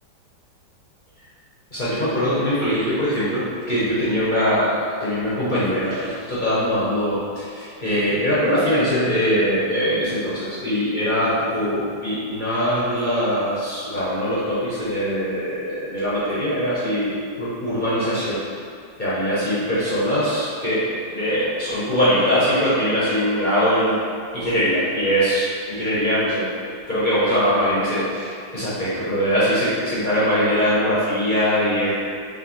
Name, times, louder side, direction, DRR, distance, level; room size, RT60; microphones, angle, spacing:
voice 1, 1.7-18.4 19.0-24.0 24.3-26.5 26.9-31.9, equal, 45° left, -10 dB, 0.6 m, -22 dB
4.8 x 3.0 x 3.0 m, 2.3 s
omnidirectional pair, 2.1 m